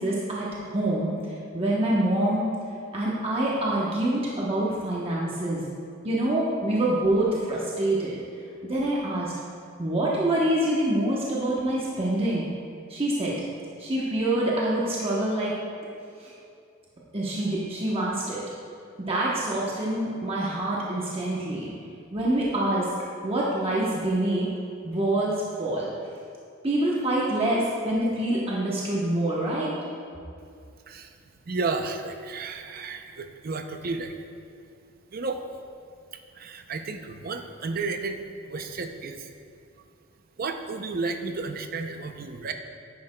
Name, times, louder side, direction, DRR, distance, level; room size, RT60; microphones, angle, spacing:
voice 1, 0.0-2.5 2.9-5.7 6.0-8.2 8.6-9.4 9.8-12.4 12.9-13.4 13.8-15.5 16.2-16.3 17.1-18.4 19.1-21.7 22.1-22.9 23.2-24.5 24.8-25.9 26.6-29.7, right 1 dB, 30° right, -6 dB, 0.9 m, -26 dB
voice 2, 31.5-34.2 35.1-35.4 36.3-38.2 38.5-39.3 40.4-42.5, right 3 dB, 45° right, 6 dB, 0.5 m, -32 dB
10.5 x 9.6 x 2.2 m, 2.4 s
head